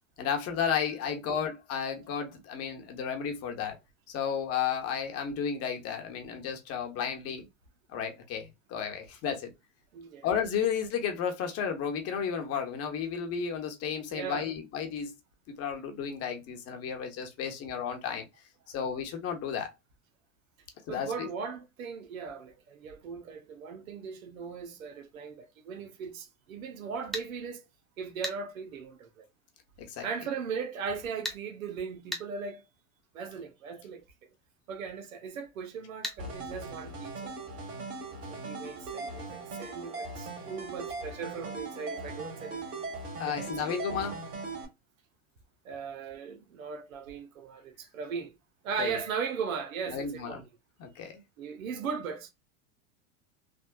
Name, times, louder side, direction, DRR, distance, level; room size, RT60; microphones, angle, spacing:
voice 1, 0.2-3.8 4.1-7.5 7.9-9.5 10.2-15.2 15.6-18.3 18.7-19.7 20.9-21.3 29.9-30.1 43.2-44.2 48.8-49.0 49.9-50.4 50.8-51.2, left 7 dB, 35° left, 0.9 m, -33 dB
voice 2, 9.9-10.3 14.1-14.5 20.9-27.6 28.0-29.3 30.0-32.6 33.1-34.0 34.7-37.4 38.3-42.6 43.3-43.8 45.6-48.4 48.6-50.4 51.4-52.3, right 6 dB, 90° right, 0.9 m, -38 dB
sound 1, 27.1-27.3 28.2-28.4 31.2-31.4 32.1-32.3 36.0-36.2, left 1 dB, ahead, 0.4 m, -34 dB
sound 2, 36.2-44.7, right 3 dB, 35° right, 1.8 m, -39 dB
3.5 x 2.3 x 2.2 m
hypercardioid pair, 115°, 40 cm